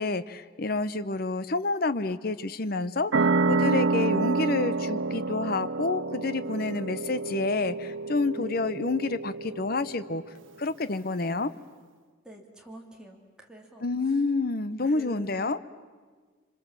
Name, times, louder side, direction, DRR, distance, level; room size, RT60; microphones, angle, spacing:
voice 1, 0.0-10.2 10.6-11.5 13.8-15.6, left 3 dB, 50° left, 13 dB, 0.7 m, -29 dB
sound 1, 3.1-10.3, right 3 dB, 75° right, 0.8 m, -28 dB
voice 2, 12.2-13.9 14.8-15.5, right 1 dB, 5° right, -1 dB, 2.8 m, -46 dB
26.5 x 25.5 x 7.5 m, 1.5 s
head